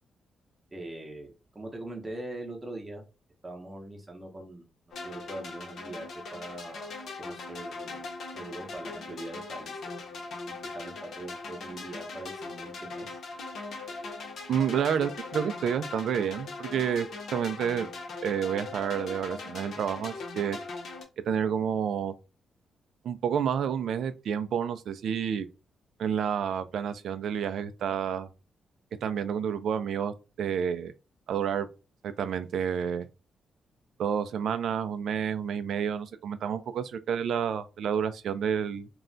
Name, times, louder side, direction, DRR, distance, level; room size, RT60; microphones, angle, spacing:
voice 1, 0.7-3.0 3.4-4.6 5.0-8.1 8.3-10.1 10.5-13.2, right 1 dB, 15° right, 0.7 m, -42 dB
sound 1, 4.9-21.0, left 3 dB, 60° left, 0.7 m, -40 dB
voice 2, 14.5-17.1 17.3-17.9 18.2-20.6 21.3-22.1 23.0-25.5 26.0-28.3 29.0-30.9 31.3-31.7 32.0-33.1 34.0-38.9, right 8 dB, 70° right, 0.3 m, -29 dB
2.3 x 2.1 x 3.7 m
wide cardioid pair, 160°, 0 cm